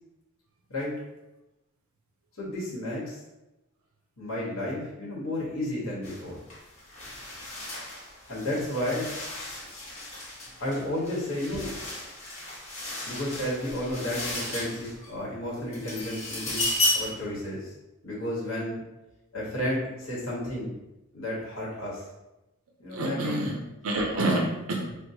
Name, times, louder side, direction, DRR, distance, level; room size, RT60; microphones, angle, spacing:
voice 1, 2.4-3.2 4.2-6.4 8.3-9.1 10.6-11.7 13.0-17.7 18.0-18.8 19.3-20.7 21.1-22.1 22.8-23.5 24.1-24.4, left 1 dB, 85° left, -6 dB, 1.1 m, -32 dB
sound 1, 6.0-6.2 6.5-15.1 15.6-17.2, left 1 dB, 35° left, 0.9 m, -34 dB
voice 2, 22.9-25.0, right 2 dB, 80° right, 1 dB, 0.5 m, -28 dB
4.4 x 2.1 x 2.7 m, 0.98 s
head